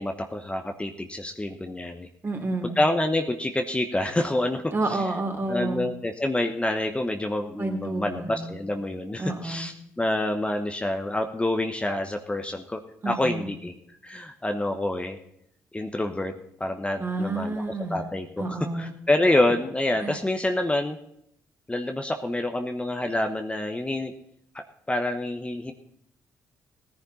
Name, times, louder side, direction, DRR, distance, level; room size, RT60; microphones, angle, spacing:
voice 1, 0.0-2.1 2.6-5.0 5.5-12.8 13.0-13.7 14.0-15.2 15.7-16.3 16.6-17.6 17.9-21.0 21.7-24.1 24.5-25.7, left 1 dB, 15° left, 5 dB, 1.2 m, -27 dB
voice 2, 2.2-2.8 4.7-5.9 7.6-8.6 9.2-9.7 13.0-13.5 17.0-18.0 18.4-18.9 20.0-20.2, right 2 dB, 35° right, 2 dB, 3.6 m, -30 dB
17.0 x 10.5 x 4.3 m, 0.74 s
supercardioid pair, 60°, 7 cm